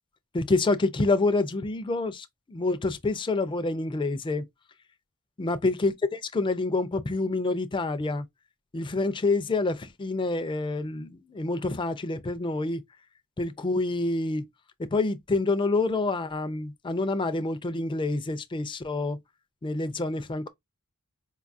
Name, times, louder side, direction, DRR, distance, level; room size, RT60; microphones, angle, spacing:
voice 1, 0.3-4.4 5.4-8.3 8.7-12.8 13.4-14.5 14.8-19.2 19.6-20.5, left 3 dB, 20° left, 0.4 m, -27 dB
4.5 x 2.3 x 2.5 m
head